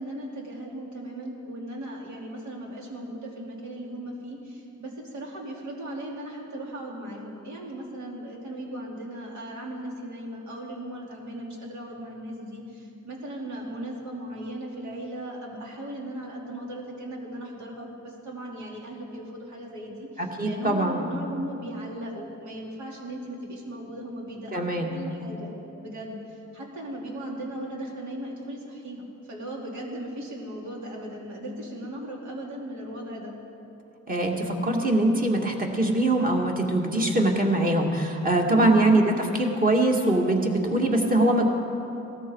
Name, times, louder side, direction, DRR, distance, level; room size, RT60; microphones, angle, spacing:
voice 1, 0.0-25.5 25.8-33.4 38.6-39.0, right 1 dB, 75° right, -2 dB, 3.2 m, -37 dB
voice 2, 20.2-21.0 24.5-24.9 34.1-41.5, right 1 dB, 30° right, 1 dB, 2.2 m, -23 dB
18.0 x 13.5 x 4.8 m, 2.9 s
cardioid pair, 85°, 29 cm